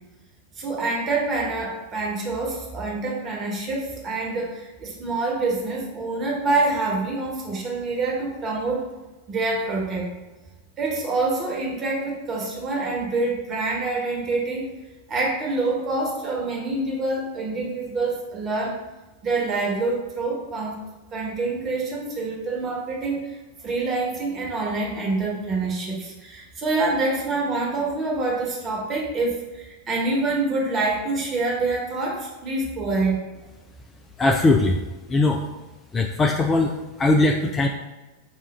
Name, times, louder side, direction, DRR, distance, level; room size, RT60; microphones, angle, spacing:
voice 1, 0.5-8.9 9.3-10.1 10.8-14.7 15.1-18.8 19.2-20.8 21.1-33.3, right 3 dB, 25° right, -2 dB, 1.1 m, -26 dB
voice 2, 34.2-34.8 35.1-35.4 35.9-36.7 37.0-37.7, left 2 dB, 20° left, 3 dB, 0.3 m, -19 dB
4.1 x 2.4 x 4.2 m, 1.1 s
figure-of-eight pair, 90°, 0 cm